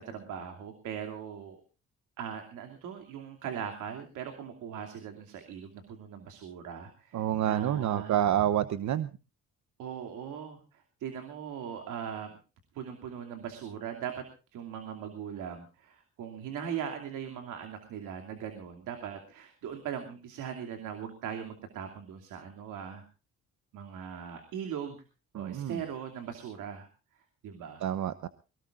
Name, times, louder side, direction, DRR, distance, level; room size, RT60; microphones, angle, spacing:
voice 1, 0.0-1.6 2.2-8.2 9.8-12.4 12.7-23.0 23.7-25.0 25.3-26.9 27.4-27.9, right 8 dB, 85° right, 5 dB, 2.8 m, -40 dB
voice 2, 7.1-9.1 25.3-25.8 27.8-28.3, right 11 dB, 70° right, 13 dB, 1.0 m, -28 dB
23.0 x 18.0 x 2.5 m, 0.32 s
cardioid pair, 90°, 30 cm